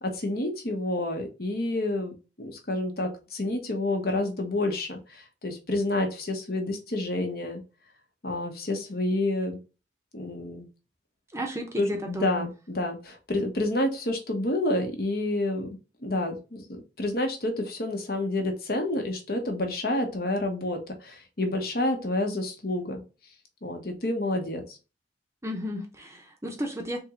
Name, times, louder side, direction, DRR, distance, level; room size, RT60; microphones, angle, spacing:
voice 1, 0.0-7.6 8.2-9.6 10.1-10.7 11.8-16.4 16.7-23.0 23.6-24.8, left 1 dB, 55° left, 1.0 m, -29 dB
voice 2, 11.3-12.5 25.4-27.0, equal, 15° right, 0.7 m, -33 dB
3.6 x 3.0 x 3.6 m
head